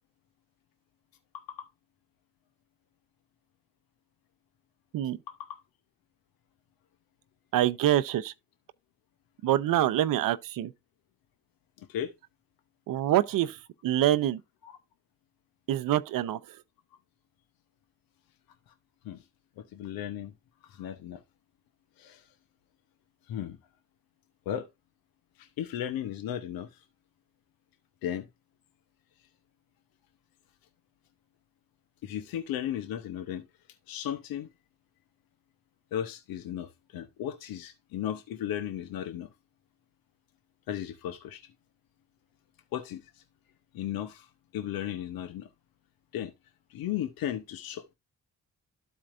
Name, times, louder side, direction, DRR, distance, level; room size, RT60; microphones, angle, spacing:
voice 1, 1.3-1.7 5.3-5.6 11.8-12.1 14.6-14.7 18.7-18.8 19.0-19.2 19.6-20.3 20.6-21.2 22.0-22.3 23.3-23.6 24.5-24.7 25.4-26.8 28.0-28.3 32.0-33.5 33.9-34.5 35.9-39.3 40.7-41.4 42.7-43.2 43.7-45.5 46.1-46.3 46.7-47.9, left 10 dB, 80° left, 0.8 m, -35 dB
voice 2, 7.5-8.3 9.4-10.7 12.9-14.4 15.7-16.6, right 12 dB, 70° right, 0.6 m, -26 dB
12.5 x 4.3 x 2.5 m
supercardioid pair, 45°, 35 cm